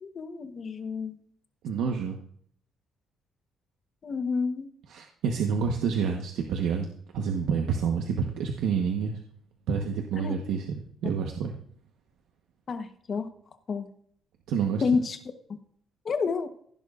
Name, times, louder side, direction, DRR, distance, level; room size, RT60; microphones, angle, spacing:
voice 1, 0.0-1.2 4.0-4.7 10.1-10.3 12.7-13.3 13.7-13.9 14.8-15.2 16.0-16.5, left 5 dB, 35° left, 9 dB, 1.0 m, -29 dB
voice 2, 1.6-2.2 4.9-6.9 7.1-9.2 9.7-11.5 14.5-14.8, right 6 dB, 85° right, 2 dB, 1.1 m, -28 dB
15.5 x 11.0 x 2.5 m, 0.62 s
cardioid pair, 150°, 0 cm